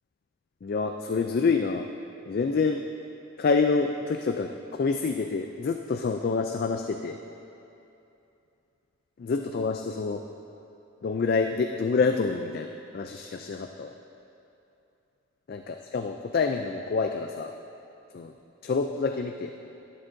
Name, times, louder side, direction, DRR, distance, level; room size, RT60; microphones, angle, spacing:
voice 1, 0.6-1.9 2.3-2.8 3.4-7.2 9.2-10.2 11.0-13.9 15.5-17.5 18.1-18.3 18.6-19.5, left 4 dB, 45° left, 5 dB, 0.3 m, -27 dB
12.5 x 11.0 x 2.6 m, 2.8 s
head